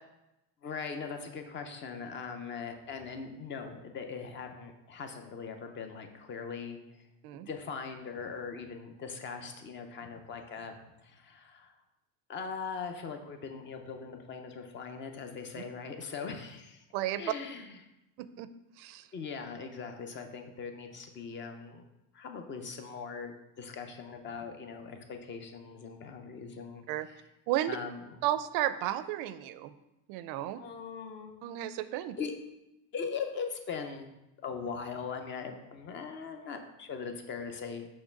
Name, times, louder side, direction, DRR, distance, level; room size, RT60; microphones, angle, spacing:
voice 1, 0.6-6.8 7.5-10.7 11.0-11.7 12.3-16.8 17.2-17.8 19.1-21.8 22.1-27.2 27.7-28.2 30.6-31.4 32.2-32.3 32.9-34.1 34.4-37.9, left 5 dB, 30° left, 6 dB, 0.5 m, -40 dB
voice 2, 18.2-18.5 18.8-19.1 26.9-27.1 27.5-27.8 28.2-29.7 30.1-30.6 31.4-32.2, right 13 dB, 75° right, 13 dB, 0.5 m, -33 dB
6.4 x 3.2 x 5.8 m, 0.91 s
cardioid pair, 170°, 40 cm